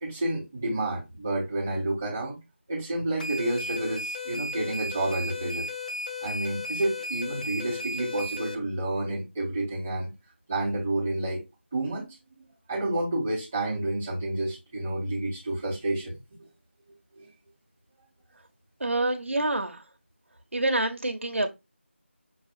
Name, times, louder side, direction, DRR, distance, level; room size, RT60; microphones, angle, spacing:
voice 1, 0.0-2.4 2.7-5.7 6.2-10.1 10.5-11.4 11.7-12.1 12.7-16.2 17.2-17.3, right 1 dB, 5° right, 0.5 m, -29 dB
sound 1, 3.2-8.5, left 2 dB, 40° left, 0.7 m, -35 dB
voice 2, 18.8-19.8 20.5-21.5, right 2 dB, 80° right, 0.8 m, -27 dB
5.5 x 2.4 x 2.5 m
figure-of-eight pair, 175°, 7 cm